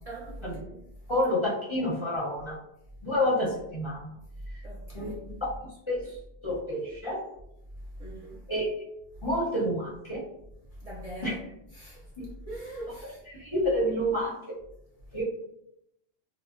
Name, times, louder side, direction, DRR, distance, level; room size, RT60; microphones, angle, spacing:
voice 1, 0.0-0.8 4.6-5.2 7.9-8.5 10.7-11.4 11.7-13.2, right 1 dB, 50° right, 0.5 m, -41 dB
voice 2, 1.1-2.6 3.0-4.1 4.9-5.4 5.9-6.2 6.4-7.2 8.5-8.7 9.2-10.2 11.2-11.3 12.2-12.3 13.3-14.3 15.1-15.2, equal, 35° left, 0.6 m, -29 dB
2.7 x 2.0 x 2.4 m
omnidirectional pair, 1.1 m